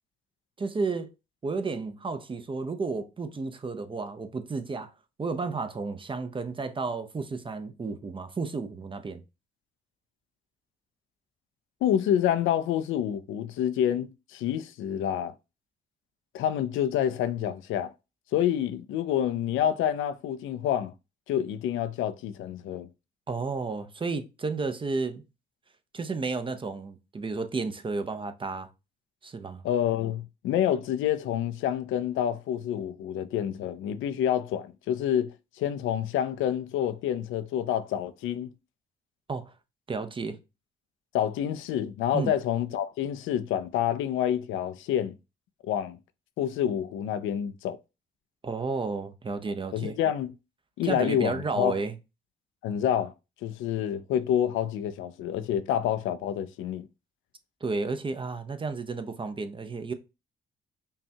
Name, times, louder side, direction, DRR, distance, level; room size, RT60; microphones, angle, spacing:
voice 1, 0.6-1.1 1.4-4.9 5.2-9.2 23.3-25.2 25.9-28.7 29.2-29.6 39.3-39.5 39.9-40.4 42.1-42.3 48.4-50.0 50.8-52.0 57.6-59.9, right 4 dB, 25° right, 0.6 m, -32 dB
voice 2, 11.8-15.3 16.3-17.9 18.3-20.9 21.3-22.9 29.6-38.5 41.1-45.2 45.7-46.0 46.4-47.8 49.7-50.3 50.8-51.7 52.6-53.1 53.4-56.9, left 10 dB, 80° left, 0.4 m, -28 dB
5.4 x 2.3 x 2.7 m
cardioid pair, 90°, 20 cm